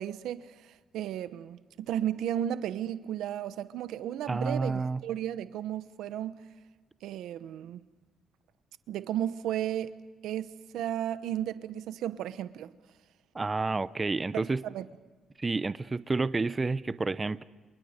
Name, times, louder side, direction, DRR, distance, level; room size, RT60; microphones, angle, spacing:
voice 1, 0.0-6.4 7.0-7.8 8.9-9.9 10.2-12.7 14.3-14.9, right 11 dB, 85° right, 1.0 m, -34 dB
voice 2, 4.3-5.0 13.3-14.6 15.4-17.4, right 3 dB, 25° right, 0.7 m, -29 dB
29.5 x 28.0 x 5.2 m
cardioid pair, 90°, 0 cm